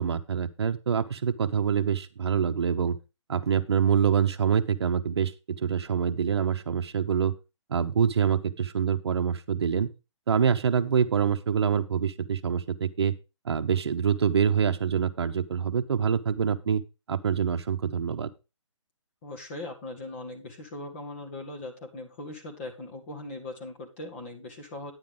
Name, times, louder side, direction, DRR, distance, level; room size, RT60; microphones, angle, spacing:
voice 1, 0.0-3.0 3.3-7.3 7.7-9.9 10.3-13.1 13.4-16.8 17.1-18.3, right 7 dB, 55° right, 10 dB, 1.0 m, -25 dB
voice 2, 19.2-24.9, left 2 dB, 25° left, 1 dB, 1.9 m, -40 dB
9.9 x 9.2 x 3.8 m, 0.28 s
hypercardioid pair, 175°, 16 cm